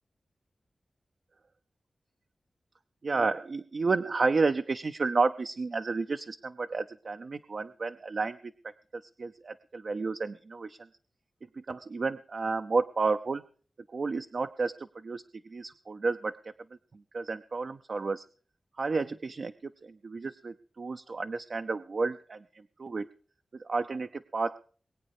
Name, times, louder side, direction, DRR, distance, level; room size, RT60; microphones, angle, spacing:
voice 1, 3.0-10.8 11.7-13.4 13.9-15.2 15.5-16.4 17.1-18.2 18.8-22.4 22.8-23.1 23.5-24.6, right 4 dB, 60° right, 7 dB, 0.6 m, -31 dB
22.0 x 8.6 x 4.9 m, 0.43 s
wide cardioid pair, 90°, 0 cm